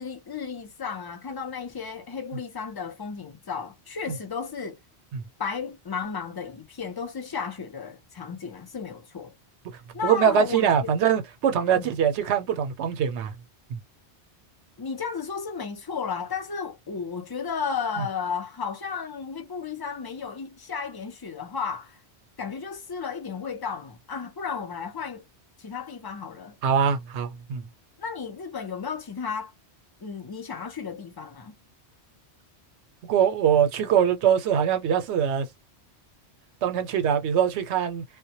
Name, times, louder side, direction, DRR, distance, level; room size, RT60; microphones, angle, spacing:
voice 1, 0.0-4.8 5.4-9.3 9.9-10.9 11.7-12.0 14.8-22.0 22.4-25.2 25.6-26.6 28.0-29.5 30.0-31.5, left 6 dB, 35° left, 0.4 m, -34 dB
voice 2, 10.0-13.3 13.7-13.8 18.0-18.1 26.6-27.6 33.0-35.5 36.6-38.0, right 8 dB, 85° right, 0.9 m, -23 dB
2.1 x 2.1 x 2.7 m
omnidirectional pair, 1.1 m